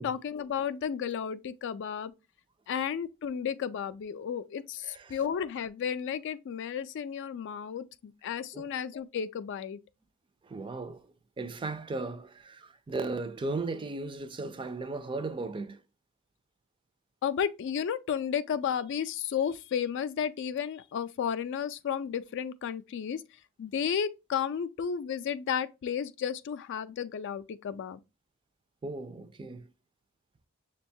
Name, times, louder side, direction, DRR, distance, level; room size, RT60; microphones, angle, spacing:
voice 1, 0.0-2.1 2.7-9.8 17.2-23.2 23.6-28.0, left 8 dB, 55° left, 0.3 m, -33 dB
voice 2, 4.8-5.2 8.5-8.7 10.4-15.8 28.8-29.7, right 3 dB, 25° right, 0.4 m, -36 dB
6.1 x 2.2 x 2.6 m
head